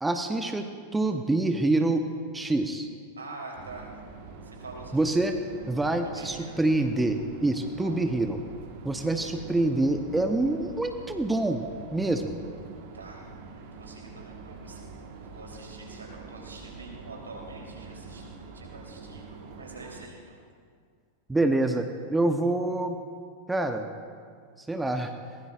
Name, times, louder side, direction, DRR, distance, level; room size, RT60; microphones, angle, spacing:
voice 1, 0.0-2.0 2.3-2.9 4.9-5.3 5.7-8.4 8.8-11.6 11.9-12.4 21.3-21.9 22.1-23.0 23.5-23.9 24.7-25.1, right 2 dB, 10° right, 6 dB, 0.9 m, -26 dB
voice 2, 3.2-4.0 4.4-5.3 6.1-6.6 7.8-8.1 9.0-9.7 12.9-13.3 13.7-18.2 18.5-20.4, right 2 dB, 75° right, -2 dB, 3.6 m, -45 dB
sound 1, 3.5-20.1, right 4 dB, 50° right, 1.6 m, -45 dB
22.0 x 20.0 x 2.5 m, 2.1 s
figure-of-eight pair, 90°, 0 cm